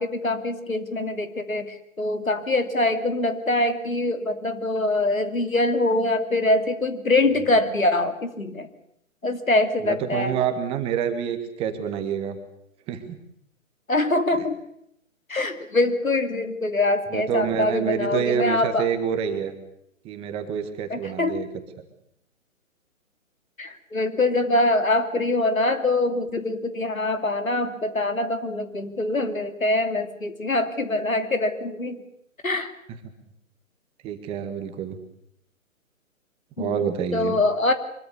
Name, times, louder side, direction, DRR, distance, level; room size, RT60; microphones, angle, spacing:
voice 1, 0.0-8.7 9.2-10.3 13.9-14.6 15.3-18.9 20.9-21.4 23.6-32.0 32.4-32.7 36.6-37.7, left 2 dB, 80° left, 8 dB, 2.9 m, -24 dB
voice 2, 9.8-12.4 12.9-13.2 17.1-19.6 20.0-21.5 34.0-35.0 36.6-37.4, right 8 dB, 15° right, 7 dB, 1.6 m, -27 dB
24.0 x 22.0 x 7.0 m, 0.75 s
figure-of-eight pair, 135°, 41 cm